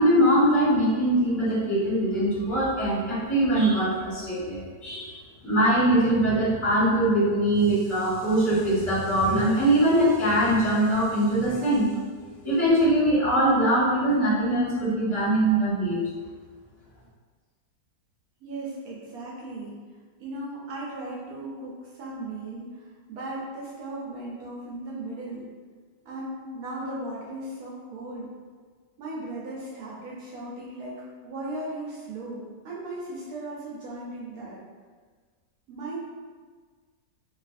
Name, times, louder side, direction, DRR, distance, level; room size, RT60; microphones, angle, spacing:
voice 1, 0.0-5.2 5.4-11.8 12.2-16.0, right 1 dB, 25° left, -12 dB, 0.8 m, -22 dB
voice 2, 18.4-19.8 20.2-25.5 26.0-28.3 29.0-34.6 35.7-36.0, right 2 dB, 70° right, -5 dB, 0.9 m, -37 dB
2.6 x 2.4 x 2.4 m, 1.5 s
omnidirectional pair, 1.8 m